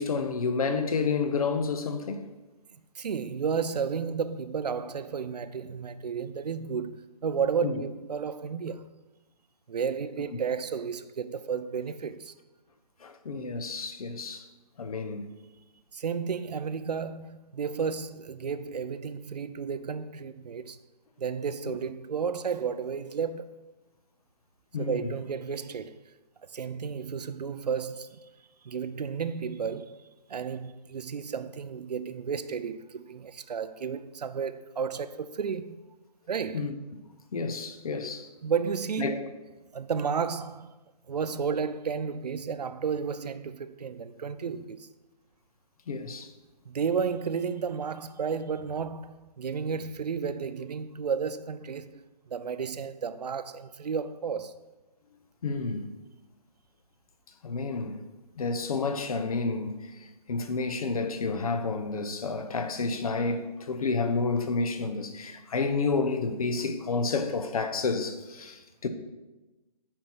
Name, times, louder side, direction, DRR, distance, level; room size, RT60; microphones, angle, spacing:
voice 1, 0.0-2.3 7.6-7.8 13.0-14.4 14.8-15.3 21.7-21.8 24.7-25.1 36.5-36.7 37.3-38.3 39.0-39.3 45.9-46.3 55.4-55.9 57.4-58.0 58.4-68.9, left 4 dB, 60° left, 1.0 m, -30 dB
voice 2, 2.9-8.9 9.7-12.3 15.9-20.8 21.2-23.7 24.8-26.0 26.5-28.3 28.6-30.0 30.3-35.8 36.3-36.6 38.4-39.1 39.7-40.7 41.1-44.9 46.6-54.6, right 6 dB, 75° right, 0.6 m, -32 dB
8.9 x 4.8 x 5.6 m
hypercardioid pair, 160°, 21 cm